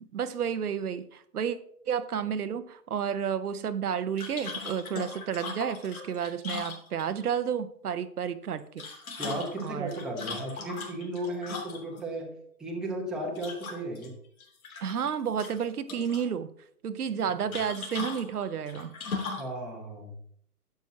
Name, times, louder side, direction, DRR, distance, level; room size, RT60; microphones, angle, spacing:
voice 1, 0.1-1.6 1.9-8.9 9.6-9.9 14.8-16.5 16.8-18.9, right 7 dB, 75° right, 0.9 m, -31 dB
sound 1, 4.2-7.3 8.6-12.0 13.4-14.1 14.4-15.1 15.4-16.3 17.5-19.5, left 4 dB, 65° left, 3.0 m, -38 dB
voice 2, 9.2-12.3 12.6-14.1 19.4-20.1, right 1 dB, ahead, 0.9 m, -35 dB
11.5 x 7.9 x 2.8 m
hypercardioid pair, 145°, 45 cm